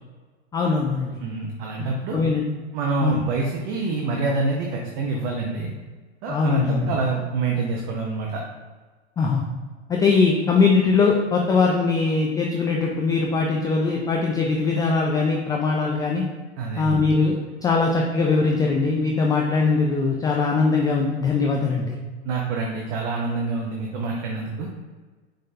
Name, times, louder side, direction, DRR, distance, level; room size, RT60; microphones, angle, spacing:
voice 1, 0.5-1.2 2.1-2.4 3.0-3.2 6.3-6.9 9.2-9.4 9.9-16.2 16.7-22.0, left 4 dB, 10° left, 0 dB, 0.3 m, -21 dB
voice 2, 1.2-2.2 2.7-5.7 6.2-8.4 16.6-17.0 22.2-24.7, right 3 dB, 45° right, -1 dB, 0.9 m, -26 dB
5.2 x 3.7 x 2.7 m, 1.4 s
hypercardioid pair, 95°, 33 cm